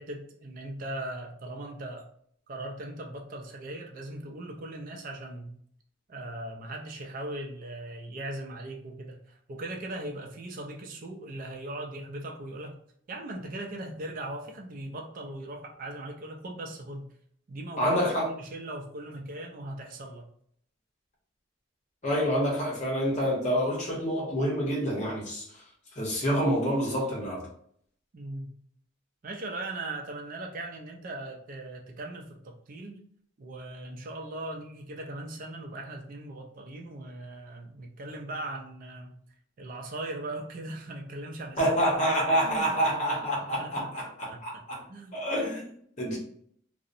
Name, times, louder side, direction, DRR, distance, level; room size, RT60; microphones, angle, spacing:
voice 1, 0.0-2.1 2.5-5.6 6.1-12.8 13.1-17.1 17.5-20.3 28.1-28.6 29.2-33.0 33.4-39.2 39.6-41.6 42.4-42.9 43.6-43.9 44.3-44.4 44.9-45.2, right 1 dB, 45° right, 1 dB, 0.4 m, -39 dB
voice 2, 17.8-18.3 22.0-25.6 25.9-27.4 41.6-44.8 45.1-45.7 46.0-46.2, equal, 35° left, -3 dB, 0.8 m, -27 dB
2.7 x 2.0 x 2.5 m, 0.64 s
head